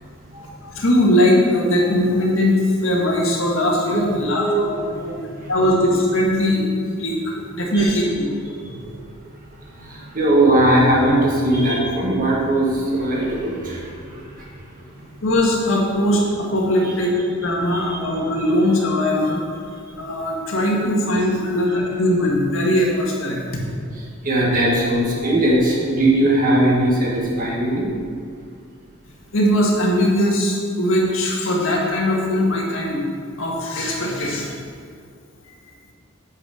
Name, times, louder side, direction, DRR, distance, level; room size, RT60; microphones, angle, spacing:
voice 1, 0.3-4.8 5.5-7.2 7.5-8.3 15.2-19.4 20.0-23.6 29.3-33.0 33.4-34.6, left 1 dB, 75° left, -2 dB, 1.8 m, -20 dB
voice 2, 4.4-5.5 7.7-7.9 8.9-9.0 9.8-14.5 17.7-18.0 21.4-21.5 24.2-27.9, right 1 dB, 40° right, -3 dB, 1.8 m, -20 dB
8.6 x 5.4 x 6.5 m, 2.2 s
head